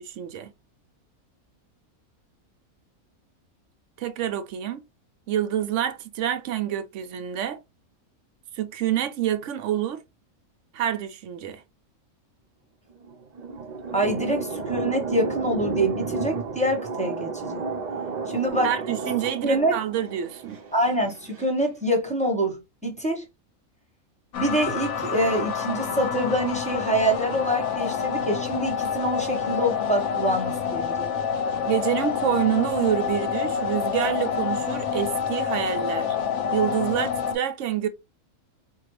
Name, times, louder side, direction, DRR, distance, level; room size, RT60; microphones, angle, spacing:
voice 1, 0.2-0.5 4.0-4.8 5.3-7.6 8.6-10.0 10.7-11.6 18.6-20.6 31.6-36.2 36.5-37.9, right 11 dB, 65° right, 0.8 m, -27 dB
sound 1, 12.9-21.4, right 4 dB, 85° right, 0.3 m, -32 dB
voice 2, 13.9-17.6 18.3-18.7 19.4-19.8 20.7-23.2 24.3-31.1, right 1 dB, 5° left, 0.8 m, -25 dB
sound 2, 24.3-37.3, left 7 dB, 60° left, 0.9 m, -27 dB
4.5 x 2.2 x 3.0 m
omnidirectional pair, 1.5 m